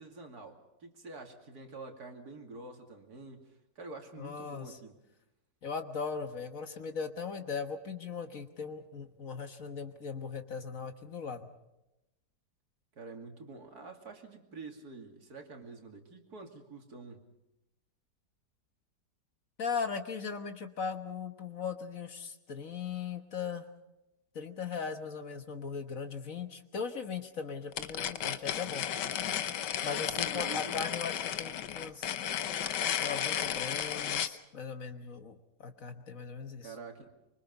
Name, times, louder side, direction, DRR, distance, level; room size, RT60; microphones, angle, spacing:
voice 1, 0.0-5.0 12.9-17.3 29.8-30.8 36.6-37.1, right 3 dB, 65° right, 3 dB, 3.1 m, -47 dB
voice 2, 4.2-4.8 5.6-11.5 19.6-23.7 24.3-28.9 29.8-32.1 33.0-36.7, left 5 dB, 55° left, 7 dB, 1.6 m, -38 dB
sound 1, 27.7-34.4, left 9 dB, 85° left, 1.6 m, -33 dB
25.5 x 24.0 x 5.4 m, 0.93 s
omnidirectional pair, 1.8 m